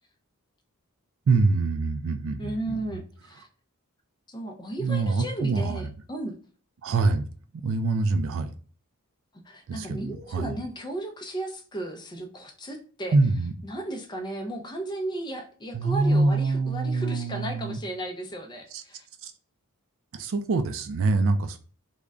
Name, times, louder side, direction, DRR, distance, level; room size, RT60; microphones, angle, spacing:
voice 1, 1.3-2.8 4.8-5.8 6.8-7.2 7.5-8.5 9.7-10.6 13.1-13.5 15.7-17.8 18.7-18.8 19.2-19.3 20.1-21.6, right 3 dB, 60° right, 8 dB, 0.4 m, -25 dB
voice 2, 2.4-3.5 4.3-6.4 9.4-13.2 13.6-19.1, right 1 dB, 20° left, 3 dB, 0.5 m, -35 dB
3.6 x 2.1 x 3.4 m, 0.40 s
head